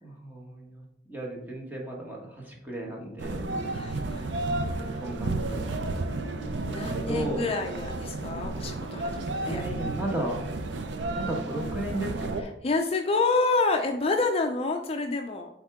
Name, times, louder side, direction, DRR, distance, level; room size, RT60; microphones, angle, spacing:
voice 1, 0.0-3.6 5.0-5.8 6.4-6.8 7.1-7.5 9.4-10.4 11.1-12.3, right 1 dB, 10° right, -2 dB, 1.4 m, -35 dB
sound 1, 3.2-12.4, right 2 dB, 90° right, 0.6 m, -32 dB
voice 2, 3.7-5.0 6.7-9.6 12.6-15.5, left 3 dB, 35° left, 4 dB, 0.4 m, -28 dB
8.0 x 3.6 x 3.6 m, 0.77 s
head